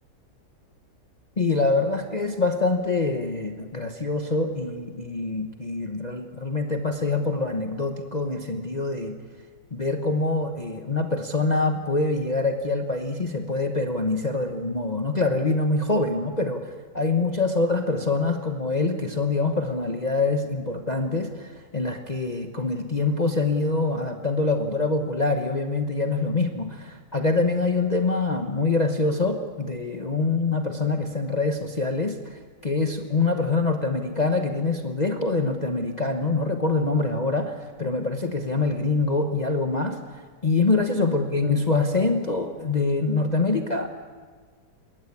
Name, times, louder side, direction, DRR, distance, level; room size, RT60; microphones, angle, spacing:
voice 1, 1.4-9.2 9.7-16.7 16.9-43.9, left 3 dB, 30° left, 4 dB, 1.1 m, -25 dB
21.5 x 18.0 x 8.5 m, 1.5 s
omnidirectional pair, 1.8 m